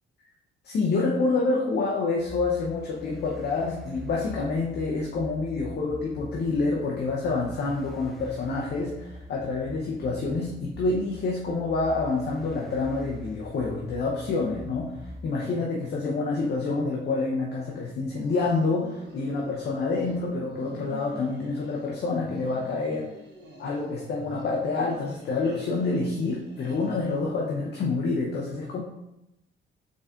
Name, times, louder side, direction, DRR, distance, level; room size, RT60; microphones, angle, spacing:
voice 1, 0.6-23.1 23.6-28.8, left 3 dB, 55° left, -2 dB, 0.7 m, -27 dB
sound 1, 2.2-15.3, left 1 dB, ahead, 0.7 m, -44 dB
sound 2, 18.1-20.2 20.4-21.9 22.2-23.9 24.2-27.4, right 1 dB, 60° right, 1.3 m, -46 dB
4.1 x 3.5 x 2.4 m, 0.88 s
cardioid pair, 90°, 20 cm